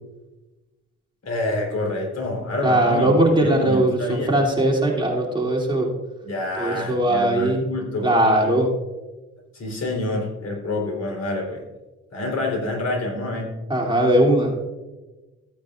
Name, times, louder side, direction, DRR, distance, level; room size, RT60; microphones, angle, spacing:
voice 1, 1.2-3.1 3.4-4.4 6.2-8.2 9.5-11.6 12.1-13.5, left 2 dB, 55° left, 0 dB, 3.8 m, -27 dB
voice 2, 2.6-5.9 6.6-7.6 8.0-8.7 13.7-14.5, right 1 dB, 15° right, -1 dB, 2.8 m, -19 dB
15.0 x 9.2 x 2.5 m, 1.1 s
cardioid pair, 70°, 30 cm